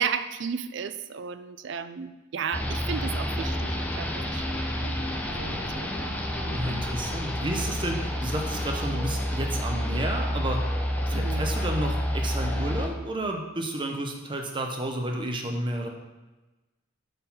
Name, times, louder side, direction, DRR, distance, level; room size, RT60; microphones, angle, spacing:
voice 1, 0.0-6.8 11.1-11.5, right 7 dB, 60° right, 12 dB, 0.4 m, -34 dB
sound 1, 2.5-12.9, equal, 10° left, 0.6 m, -29 dB
voice 2, 6.5-10.6 11.0-15.9, right 1 dB, 25° right, 2 dB, 0.8 m, -31 dB
6.6 x 3.9 x 5.6 m, 1.1 s
head